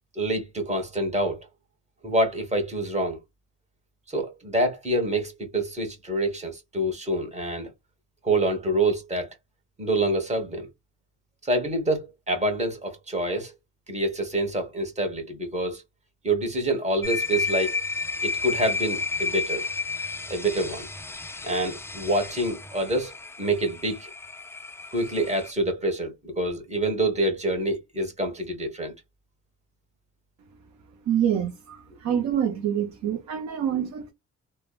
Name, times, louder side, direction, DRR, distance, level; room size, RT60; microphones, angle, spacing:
voice 1, 0.1-1.4 2.0-3.2 4.1-7.7 8.2-9.3 9.8-10.7 11.4-13.5 13.9-15.8 16.2-17.8 18.2-19.7 20.3-20.9 21.4-24.1 24.9-28.9, right 1 dB, 20° right, 1.4 m, -26 dB
sound 1, 17.0-25.5, left 4 dB, 10° left, 0.3 m, -32 dB
voice 2, 31.1-34.1, right 9 dB, 70° right, 0.7 m, -26 dB
3.2 x 2.1 x 2.4 m
cardioid pair, 90°, 30 cm